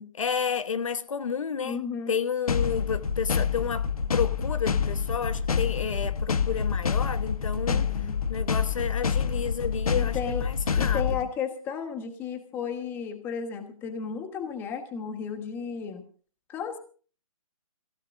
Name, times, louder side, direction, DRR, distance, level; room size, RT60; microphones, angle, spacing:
voice 1, 0.1-1.8 2.1-7.9 8.3-11.1, left 7 dB, 65° left, 1.2 m, -31 dB
voice 2, 1.6-2.2 7.7-8.2 10.0-10.4 10.7-16.0 16.5-16.8, left 7 dB, 10° left, 1.3 m, -34 dB
sound 1, 2.5-11.2, left 6 dB, 85° left, 1.2 m, -27 dB
24.0 x 16.5 x 2.6 m
hypercardioid pair, 160°, 18 cm